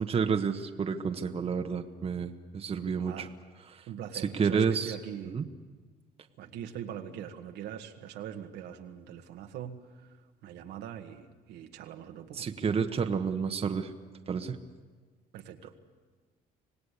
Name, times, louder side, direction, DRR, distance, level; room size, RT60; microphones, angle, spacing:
voice 1, 0.0-3.3 3.7-3.9 4.2-5.0 5.2-5.5 12.3-13.9 14.3-14.6, right 6 dB, 35° right, 6 dB, 1.3 m, -30 dB
voice 2, 3.9-5.3 6.4-9.8 10.4-12.5 15.3-15.7, right 9 dB, 85° right, 4 dB, 1.8 m, -42 dB
26.0 x 18.5 x 8.4 m, 1.4 s
cardioid pair, 110°, 17 cm